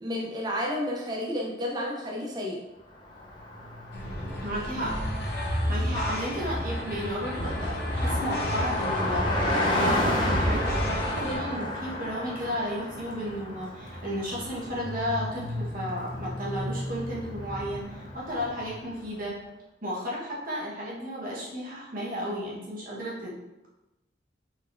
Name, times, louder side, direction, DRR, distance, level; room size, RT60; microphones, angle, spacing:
voice 1, 0.0-2.6, left 1 dB, 25° right, -3 dB, 0.6 m, -31 dB
Car passing by, 3.0-19.1, left 1 dB, 25° left, 0.7 m, -33 dB
sound 1, 3.9-11.4, equal, 65° left, 0.9 m, -30 dB
voice 2, 4.4-4.9 5.7-9.3 9.7-19.3 19.8-23.3, equal, 50° right, -5 dB, 1.3 m, -33 dB
4.2 x 3.9 x 2.6 m, 1.0 s
head